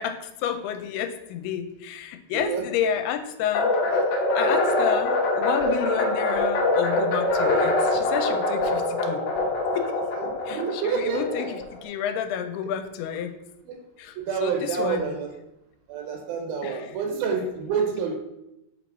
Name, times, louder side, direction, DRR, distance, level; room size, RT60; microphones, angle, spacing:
voice 1, 0.0-3.7 4.3-9.2 9.8-10.0 10.5-13.4 14.0-14.2 14.4-15.0 16.6-16.8, left 9 dB, 85° left, 7 dB, 2.5 m, -30 dB
voice 2, 2.3-2.6 4.6-4.9 10.1-11.5 13.7-13.8 14.2-15.3 15.9-18.1, right 6 dB, 75° right, 3 dB, 2.4 m, -28 dB
sound 1, 3.5-11.8, left 2 dB, 70° left, 1.6 m, -24 dB
7.7 x 3.0 x 5.2 m, 0.89 s
omnidirectional pair, 4.6 m